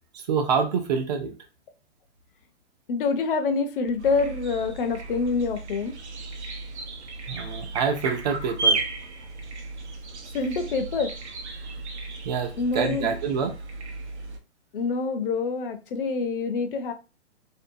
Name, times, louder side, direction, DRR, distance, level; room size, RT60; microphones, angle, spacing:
voice 1, 0.1-1.3 7.3-8.8 12.2-13.5, right 6 dB, 40° right, 0.6 m, -26 dB
voice 2, 2.9-5.9 10.3-11.1 12.6-13.1 14.7-16.9, left 4 dB, 55° left, 0.6 m, -26 dB
sound 1, 4.0-14.4, right 3 dB, 75° right, 0.8 m, -33 dB
2.7 x 2.2 x 2.6 m
hypercardioid pair, 145°, 34 cm